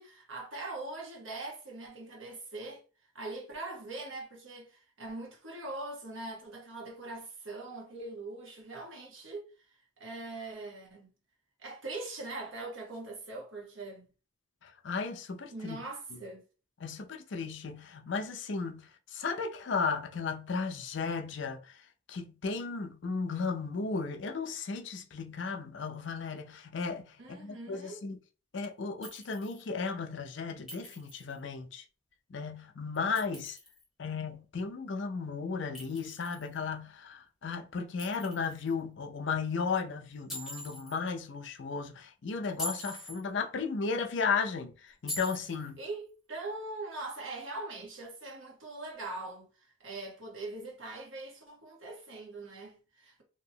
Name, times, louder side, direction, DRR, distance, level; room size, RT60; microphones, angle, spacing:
voice 1, 0.0-2.8 3.1-9.4 10.0-11.1 11.6-14.1 15.5-16.4 27.2-28.0 45.8-53.2, right 2 dB, 75° right, 1.2 m, -42 dB
voice 2, 14.6-15.8 16.8-21.8 22.1-28.2 28.5-31.8 32.3-33.6 34.0-45.8, left 5 dB, 65° left, 0.5 m, -35 dB
Chink clink, 29.0-29.7 30.7-31.3 32.9-33.8 35.8-36.6 38.0-38.7 40.3-41.0 42.4-43.2 45.1-45.7, left 1 dB, ahead, 1.1 m, -43 dB
2.9 x 2.7 x 2.8 m
head